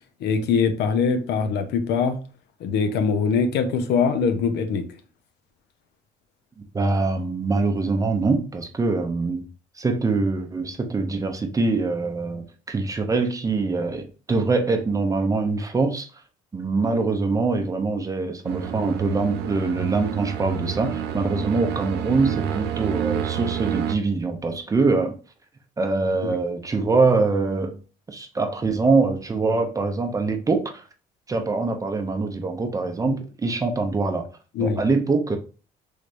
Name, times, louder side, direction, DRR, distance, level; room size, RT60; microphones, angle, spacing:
voice 1, 0.2-2.2 2.6-4.8 26.2-26.3 33.0-33.2 34.5-34.8, left 5 dB, 80° left, 0.6 m, -22 dB
voice 2, 6.7-9.4 9.8-16.1 16.5-25.1 25.8-27.8 28.1-30.8 31.3-34.3 34.6-35.4, right 3 dB, 20° right, 0.6 m, -24 dB
sound 1, 18.4-23.9, right 8 dB, 80° right, 0.5 m, -28 dB
3.2 x 3.2 x 2.5 m
cardioid pair, 110°, 17 cm